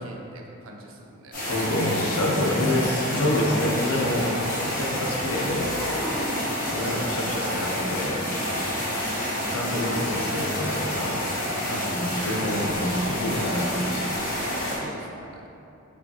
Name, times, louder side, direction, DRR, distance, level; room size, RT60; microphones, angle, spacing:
voice 1, 0.0-1.6 6.3-6.5 8.7-9.1 11.6-11.8 14.7-15.1, right 1 dB, 75° right, 0 dB, 0.5 m, -45 dB
sound 1, 1.3-14.8, equal, 40° left, 1.0 m, -28 dB
voice 2, 1.5-4.4 4.6-5.8 6.7-8.3 9.5-11.2 11.7-14.1, left 1 dB, 90° left, -1 dB, 0.5 m, -27 dB
Dog, 3.1-4.6 5.7-7.3, equal, 20° left, 0.5 m, -36 dB
4.7 x 2.4 x 2.7 m, 2.8 s
head